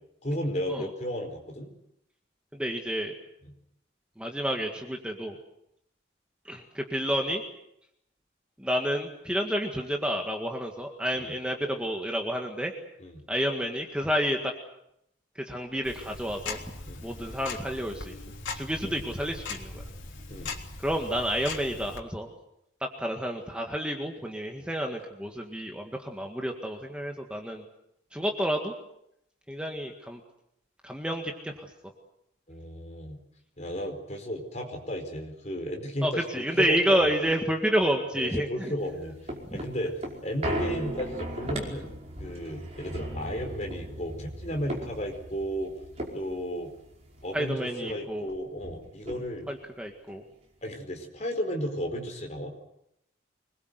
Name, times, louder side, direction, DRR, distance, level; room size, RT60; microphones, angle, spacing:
voice 1, 0.2-1.7 11.2-11.3 13.0-13.2 16.8-17.0 18.8-19.0 20.3-20.5 32.5-33.2 33.6-37.0 38.1-39.2 39.5-41.9 42.2-45.7 46.1-46.7 47.2-49.5 50.6-52.5, equal, 35° left, 3 dB, 4.9 m, -34 dB
voice 2, 2.5-3.1 4.2-5.4 6.5-7.4 8.6-12.7 13.3-14.5 15.4-16.6 17.0-18.2 18.5-19.8 20.8-22.3 22.8-27.6 28.1-28.7 29.5-30.2 30.8-31.7 36.0-38.7 39.5-39.6 47.3-48.3 49.5-50.2, equal, 5° right, 2 dB, 1.8 m, -30 dB
Tick-tock, 15.8-22.0, left 3 dB, 90° left, 3.4 m, -39 dB
sound 1, 38.8-47.5 47.9-48.0 48.2-49.6 50.1-50.2, right 1 dB, 35° right, 5.2 m, -37 dB
25.5 x 21.0 x 8.1 m, 0.78 s
head